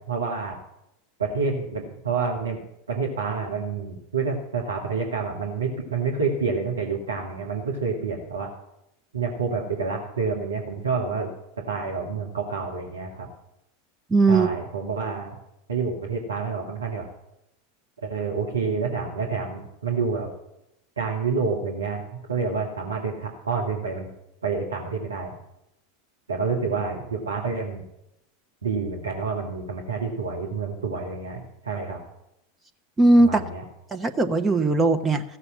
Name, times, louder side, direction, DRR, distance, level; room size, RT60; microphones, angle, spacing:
voice 1, 0.1-0.6 1.2-2.6 2.9-8.5 9.1-11.3 11.7-13.3 14.3-15.4 15.7-17.0 18.0-20.3 21.0-22.0 22.3-24.1 24.4-25.3 26.3-27.8 28.6-32.0 33.2-33.6, right 4 dB, 85° right, -1 dB, 1.9 m, -28 dB
voice 2, 14.1-14.5 33.0-33.4 33.9-35.2, right 2 dB, 15° right, 5 dB, 1.0 m, -19 dB
15.5 x 6.8 x 7.4 m, 0.85 s
figure-of-eight pair, 90°, 0 cm